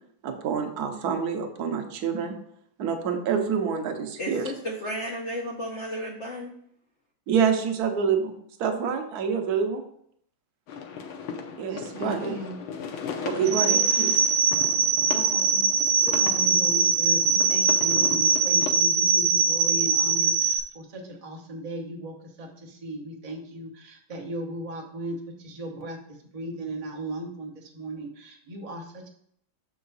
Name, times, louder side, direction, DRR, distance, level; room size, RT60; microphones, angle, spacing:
voice 1, 0.2-2.4 2.8-4.5 7.3-8.3 8.6-9.8 11.6-12.3 13.2-14.2, right 6 dB, 60° right, 5 dB, 1.2 m, -27 dB
voice 2, 4.2-6.5, equal, 65° left, -1 dB, 0.7 m, -33 dB
sound 1, 10.7-18.7, left 6 dB, 80° left, 1.6 m, -37 dB
voice 3, 11.7-12.6 13.4-13.5 13.9-14.2 15.1-15.7 16.0-29.1, right 1 dB, 35° right, 1 dB, 0.5 m, -37 dB
sound 2, 13.5-20.6, right 5 dB, 85° right, 1.5 m, -22 dB
6.8 x 4.7 x 4.0 m, 0.69 s
omnidirectional pair, 2.3 m